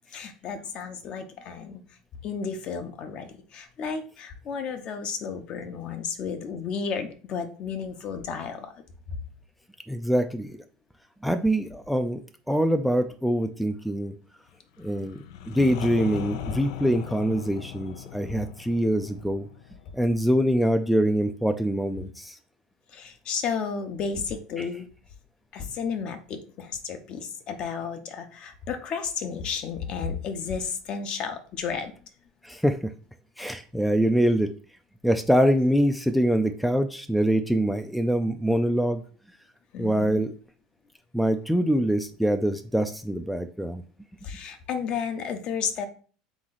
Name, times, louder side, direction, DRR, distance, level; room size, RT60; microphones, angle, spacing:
voice 1, 0.1-1.8 2.2-8.7 22.9-24.9 25.5-31.9 39.7-40.2 44.2-45.9, left 6 dB, 45° left, 7 dB, 0.8 m, -32 dB
voice 2, 9.9-10.6 11.2-12.2 12.5-14.1 14.8-19.4 19.9-22.4 24.6-24.7 32.4-32.9 33.4-34.5 35.0-39.0 39.8-40.3 41.1-43.8, equal, ahead, 7 dB, 0.4 m, -24 dB
sound 1, 14.8-20.5, left 12 dB, 80° left, 0.4 m, -39 dB
3.7 x 3.1 x 3.9 m, 0.41 s
supercardioid pair, 110°, 2 cm